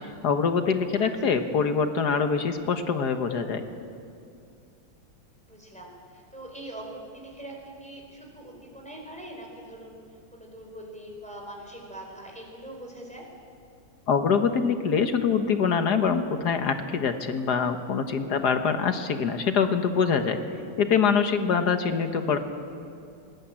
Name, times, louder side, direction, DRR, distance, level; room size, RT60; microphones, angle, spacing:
voice 1, 0.2-3.6 14.1-20.4 20.8-22.4, left 6 dB, 55° left, 8 dB, 1.6 m, -24 dB
voice 2, 0.9-1.4 5.4-10.0 10.3-13.3 20.4-20.6, right 1 dB, 5° left, -1 dB, 4.4 m, -43 dB
20.0 x 18.0 x 8.7 m, 2.5 s
omnidirectional pair, 2.2 m